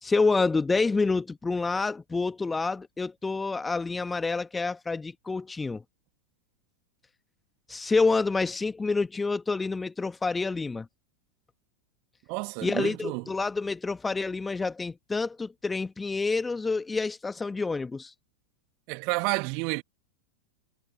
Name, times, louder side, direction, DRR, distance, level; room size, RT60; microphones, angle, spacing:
voice 1, 0.0-5.8 7.7-10.9 12.6-18.1, left 3 dB, 10° left, 1.4 m, -28 dB
voice 2, 12.3-13.3 18.9-19.8, right 34 dB, 45° right, 2.3 m, -30 dB
figure-of-eight pair, 90°, 0 cm